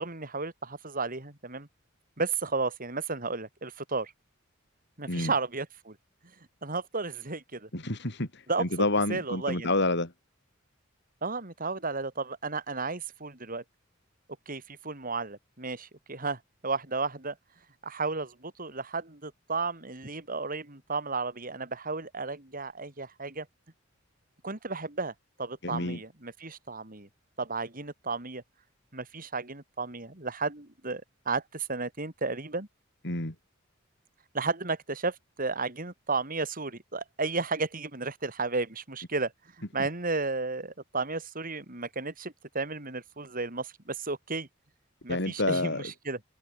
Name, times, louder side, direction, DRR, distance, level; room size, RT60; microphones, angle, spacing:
voice 1, 0.0-1.7 2.2-4.1 5.0-6.0 6.6-7.7 8.5-8.7 9.1-9.7 11.2-13.6 14.5-17.4 17.8-23.5 24.4-25.1 25.4-27.1 27.4-28.4 28.9-32.7 34.3-39.3 39.7-44.5 45.0-46.2, right 3 dB, 45° right, 4.2 m, -33 dB
voice 2, 7.7-10.1 25.6-26.0 33.0-33.3 45.1-45.9, left 2 dB, 60° left, 5.0 m, -29 dB
head